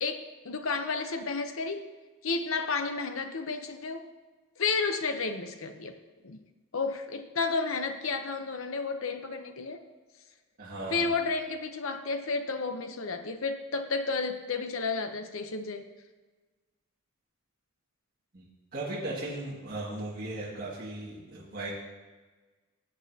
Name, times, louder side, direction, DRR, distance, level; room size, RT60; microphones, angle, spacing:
voice 1, 0.0-1.9 2.2-4.1 4.6-5.9 6.2-6.4 6.7-9.8 10.9-15.8, left 4 dB, 65° left, 8 dB, 0.8 m, -32 dB
voice 2, 10.6-11.1 18.3-21.7, right 2 dB, 40° right, -8 dB, 2.0 m, -37 dB
17.0 x 7.9 x 2.8 m, 1.3 s
head